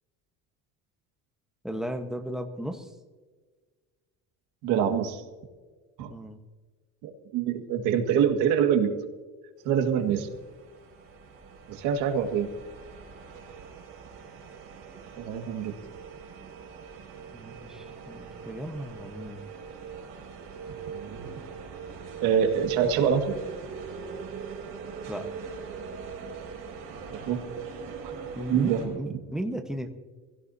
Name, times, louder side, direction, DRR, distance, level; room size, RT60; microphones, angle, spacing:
voice 1, 1.6-2.9 6.1-6.4 17.3-19.5 25.1-25.3 28.3-29.9, right 1 dB, ahead, 5 dB, 1.1 m, -35 dB
voice 2, 4.6-5.2 6.0-6.1 7.0-8.9 9.7-10.3 11.7-12.5 15.2-15.7 20.9-21.3 22.2-23.3 27.1-27.4 28.0-28.1 28.5-29.2, right 8 dB, 70° right, 5 dB, 1.9 m, -25 dB
sound 1, 9.9-28.9, right 6 dB, 45° right, 5.5 m, -41 dB
24.5 x 16.5 x 2.8 m, 1.4 s
cardioid pair, 155°, 32 cm